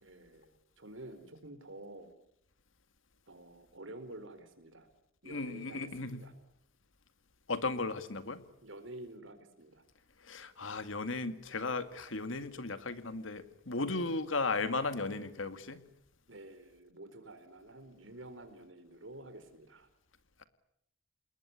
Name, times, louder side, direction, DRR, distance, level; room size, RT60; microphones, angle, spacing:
voice 1, 0.0-2.1 3.3-4.9 5.2-6.3 8.6-9.8 16.3-19.9, right 1 dB, 70° right, 9 dB, 4.4 m, -50 dB
voice 2, 5.3-6.2 7.5-8.4 10.2-15.8, left 3 dB, 75° left, 11 dB, 2.0 m, -35 dB
28.0 x 21.0 x 9.7 m, 0.76 s
head